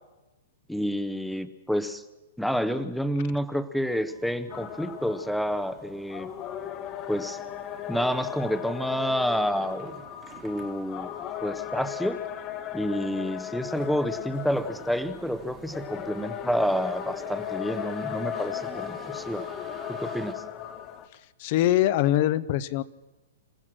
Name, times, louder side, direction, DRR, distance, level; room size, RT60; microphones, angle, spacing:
voice 1, 0.7-2.0 2.4-6.3 7.1-7.4 7.9-10.0 10.4-11.1 11.4-12.2 12.7-19.5 19.9-20.4, equal, ahead, 12 dB, 0.8 m, -29 dB
sound 1, 3.8-20.3, right 7 dB, 20° right, 1.5 m, -51 dB
sound 2, 4.5-21.1, left 11 dB, 25° left, 1.1 m, -37 dB
voice 2, 21.4-22.8, left 13 dB, 40° left, 18 dB, 0.7 m, -23 dB
27.0 x 15.5 x 6.2 m, 1.1 s
hypercardioid pair, 160°, 0 cm